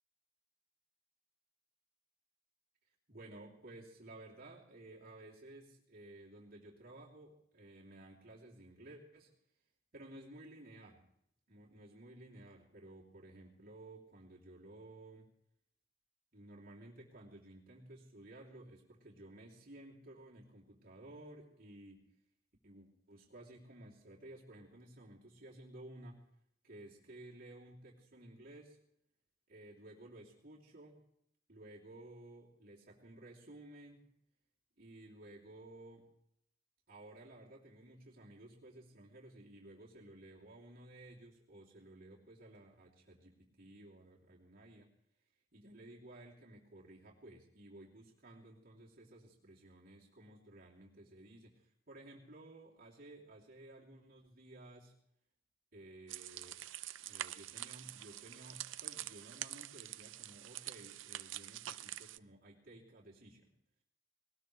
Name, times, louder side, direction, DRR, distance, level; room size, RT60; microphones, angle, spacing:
voice 1, 3.1-9.3 9.9-11.1 11.5-15.3 16.3-22.0 22.6-26.2 26.6-28.8 29.5-31.0 31.5-34.1 34.8-36.1 36.9-44.9 45.5-54.9 55.7-56.6 57.0-63.5, right 1 dB, 50° right, -3 dB, 3.0 m, -55 dB
sound 1, 56.1-62.2, right 13 dB, 80° right, 0.5 m, -46 dB
20.0 x 19.5 x 3.3 m, 0.74 s
head